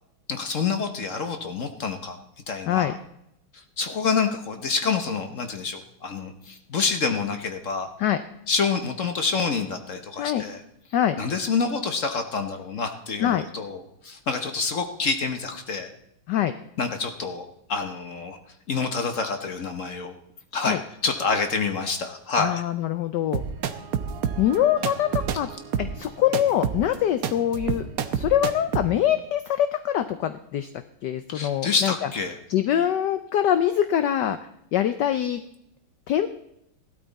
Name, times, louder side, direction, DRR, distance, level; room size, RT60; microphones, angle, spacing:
voice 1, 0.3-2.2 2.5-3.0 3.5-7.9 8.5-10.6 11.2-15.9 16.8-18.4 18.7-20.1 20.5-22.6 31.3-32.4, left 5 dB, 45° left, 6 dB, 1.2 m, -27 dB
voice 2, 22.4-23.4 24.4-25.5 25.8-27.8 28.1-30.7 31.0-31.9 32.5-34.4 34.7-35.4 36.1-36.3, left 11 dB, 70° left, 11 dB, 1.1 m, -24 dB
sound 1, 23.3-28.9, right 7 dB, 60° right, 1.0 m, -29 dB
16.0 x 12.5 x 4.1 m, 0.79 s
omnidirectional pair, 2.3 m